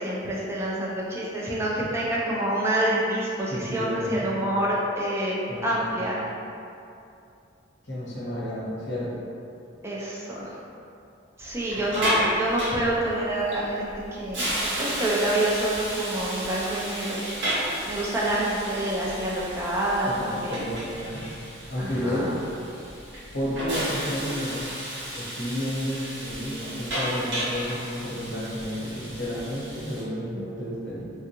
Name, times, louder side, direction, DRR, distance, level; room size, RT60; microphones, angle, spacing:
voice 1, 0.0-5.4 5.6-6.2 9.8-10.6 11.4-14.5 14.8-17.2 17.9-20.7 21.8-22.3, right 1 dB, 15° right, -6 dB, 0.5 m, -27 dB
voice 2, 3.5-4.2 5.5-5.9 7.8-9.2 11.8-11.9 20.1-21.3 21.7-22.4 23.3-24.6 25.1-31.1, equal, 70° left, -8 dB, 1.1 m, -31 dB
Hiss, 11.4-30.0, right 1 dB, 65° right, 0.8 m, -33 dB
3.3 x 2.5 x 2.9 m, 2.6 s
head